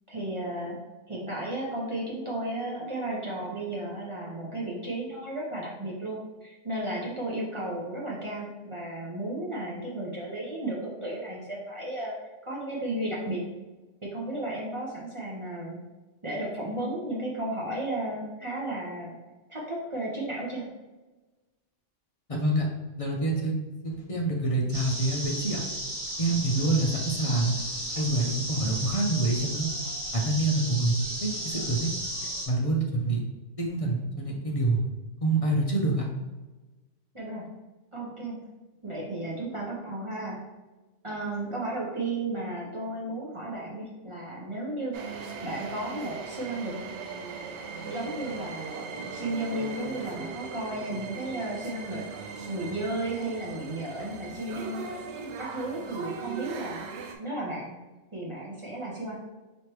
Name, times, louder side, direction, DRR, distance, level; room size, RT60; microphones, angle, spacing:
voice 1, 0.1-0.8 1.1-12.1 12.4-13.4 14.0-15.8 16.2-19.2 19.5-20.6 37.1-37.5 37.9-38.4 38.8-40.4 41.0-45.0 45.4-46.7 47.8-54.9 55.4-56.8 57.2-57.8 58.1-59.2, right 1 dB, 30° right, -5 dB, 0.8 m, -34 dB
voice 2, 22.3-22.7 23.0-23.5 23.8-25.6 26.2-27.5 28.0-29.7 30.1-30.9 31.2-31.9 32.5-33.2 33.6-34.8 35.2-36.0, right 2 dB, 35° left, -1 dB, 0.6 m, -26 dB
sound 1, 24.7-32.5, equal, 50° right, 1.4 m, -34 dB
sound 2, 44.9-57.1, right 5 dB, 70° right, 0.9 m, -39 dB
5.0 x 3.1 x 3.0 m, 1.2 s
omnidirectional pair, 1.3 m